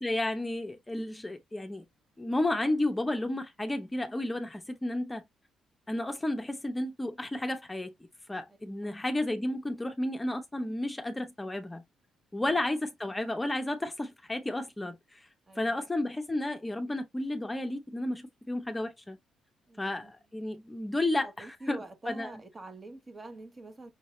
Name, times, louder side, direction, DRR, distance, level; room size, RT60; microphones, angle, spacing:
voice 1, 0.0-1.8 2.2-5.2 5.9-7.9 8.3-11.8 12.3-15.2 15.6-19.2 19.8-21.8 22.1-22.4, left 1 dB, 10° left, 0.8 m, -32 dB
voice 2, 15.5-15.8 19.7-20.1 21.2-23.9, right 2 dB, 25° right, 1.1 m, -46 dB
5.6 x 2.7 x 3.1 m
cardioid pair, 105°, 0 cm